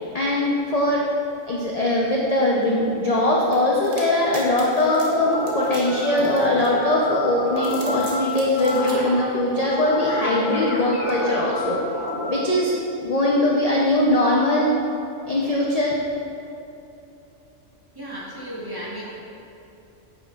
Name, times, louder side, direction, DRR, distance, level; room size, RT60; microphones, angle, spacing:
voice 1, 0.1-1.1 1.5-11.8 12.3-14.7 15.3-16.0, left 1 dB, 45° left, -3 dB, 0.5 m, -21 dB
sound 1, 3.5-7.0 7.5-9.0, right 3 dB, 75° right, 1.4 m, -41 dB
sound 2, 4.8-12.4, left 1 dB, 70° left, 1.3 m, -29 dB
voice 2, 17.9-19.0, equal, 20° right, -7 dB, 1.2 m, -34 dB
8.9 x 5.6 x 2.3 m, 2.9 s
omnidirectional pair, 1.3 m